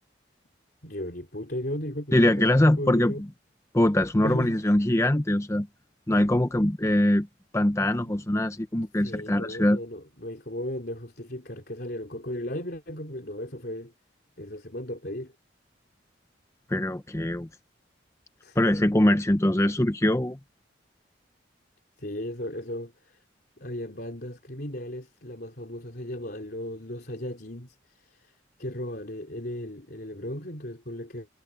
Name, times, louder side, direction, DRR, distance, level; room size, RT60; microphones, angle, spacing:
voice 1, 0.8-3.3 4.2-4.7 8.0-8.2 9.0-13.9 14.4-15.3 18.4-18.6 22.0-23.2 23.6-31.3, left 1 dB, 55° left, 3.9 m, -36 dB
voice 2, 2.1-3.1 3.7-5.7 6.1-7.3 7.5-9.8 16.7-17.5 18.6-20.4, left 1 dB, 15° left, 0.6 m, -22 dB
head